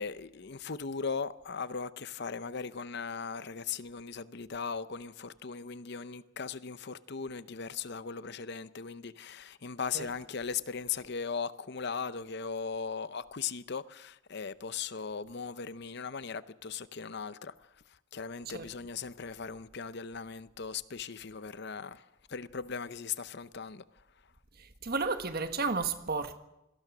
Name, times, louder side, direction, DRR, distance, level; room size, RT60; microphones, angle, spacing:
voice 1, 0.0-17.5 18.1-22.0 22.3-23.8, left 5 dB, 55° left, 0.7 m, -38 dB
voice 2, 24.6-26.4, right 4 dB, 45° right, 1.5 m, -32 dB
26.5 x 18.5 x 6.1 m
head